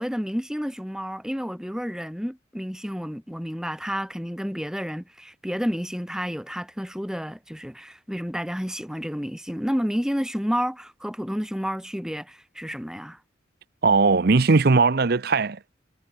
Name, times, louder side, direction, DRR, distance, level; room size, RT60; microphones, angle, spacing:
voice 1, 0.0-13.2, equal, 5° right, 5.6 m, -30 dB
voice 2, 13.8-15.8, right 4 dB, 55° right, 0.7 m, -19 dB
head